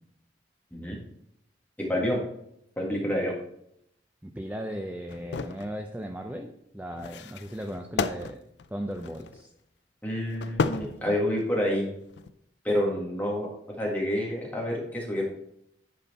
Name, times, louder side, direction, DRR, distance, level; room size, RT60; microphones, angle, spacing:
voice 1, 1.8-2.2 2.8-3.3 10.0-11.9 12.6-13.5 13.8-15.2, equal, 10° left, -2 dB, 1.7 m, -28 dB
voice 2, 4.2-8.4 8.7-9.5, equal, 10° right, 3 dB, 0.5 m, -36 dB
sound 1, 5.1-5.7 7.0-9.5 10.3-11.6 12.1-12.3, left 4 dB, 70° left, 0.4 m, -33 dB
10.0 x 4.3 x 4.1 m, 0.76 s
head